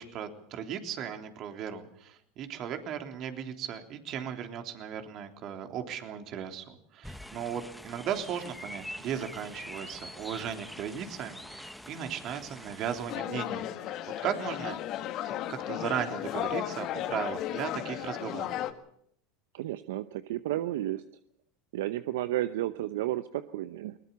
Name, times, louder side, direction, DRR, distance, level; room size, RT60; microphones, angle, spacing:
voice 1, 0.0-13.9 14.2-14.8 15.2-18.6, right 8 dB, 50° right, 6 dB, 3.5 m, -36 dB
sound 1, 7.0-13.2, equal, ahead, 1.5 m, -45 dB
sound 2, 13.1-18.7, left 12 dB, 50° left, 1.9 m, -35 dB
voice 2, 19.5-21.0 21.7-24.0, right 14 dB, 75° right, 13 dB, 0.8 m, -32 dB
21.5 x 20.5 x 7.1 m, 0.71 s
hypercardioid pair, 95°, 0 cm